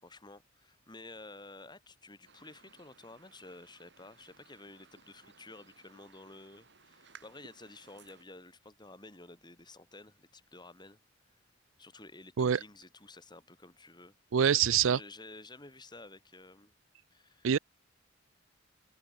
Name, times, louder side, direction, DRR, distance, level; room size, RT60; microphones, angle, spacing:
voice 1, 0.0-11.0 11.8-14.1 14.5-16.7 17.1-17.5, left 2 dB, 25° left, 5.4 m, -52 dB
sound 1, 2.2-8.2, right 5 dB, 60° right, 5.7 m, -60 dB
voice 2, 14.3-15.0 17.4-17.6, right 8 dB, 90° right, 0.5 m, -25 dB
open air
head